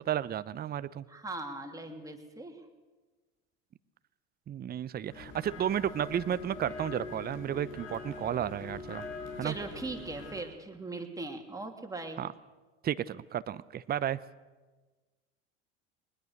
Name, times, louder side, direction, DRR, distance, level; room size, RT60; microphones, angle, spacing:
voice 1, 0.0-1.1 4.5-9.0 9.4-9.5 12.2-12.3 12.8-14.2, right 10 dB, 25° right, 16 dB, 0.8 m, -33 dB
voice 2, 1.1-2.6 9.4-12.2, right 2 dB, 10° right, 3 dB, 3.1 m, -40 dB
sound 1, 5.1-10.4, left 3 dB, 60° left, 5.9 m, -43 dB
21.5 x 20.0 x 6.6 m, 1.3 s
hypercardioid pair, 80°, 35 cm